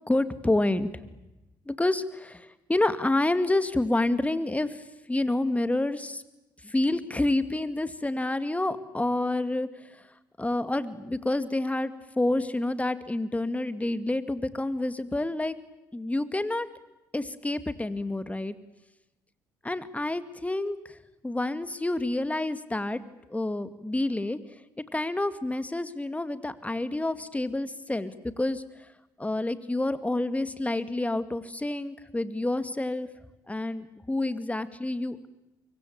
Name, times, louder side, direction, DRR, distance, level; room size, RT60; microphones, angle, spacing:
voice 1, 0.1-0.9 1.7-4.8 5.1-6.2 6.6-9.7 10.4-15.5 15.9-16.7 17.1-18.5 19.6-20.8 21.2-23.0 23.3-24.4 24.9-28.6 29.2-33.1 33.5-35.3, left 2 dB, 15° left, 12 dB, 2.3 m, -28 dB
25.5 x 23.5 x 8.9 m, 0.98 s
hypercardioid pair, 50°, 10 cm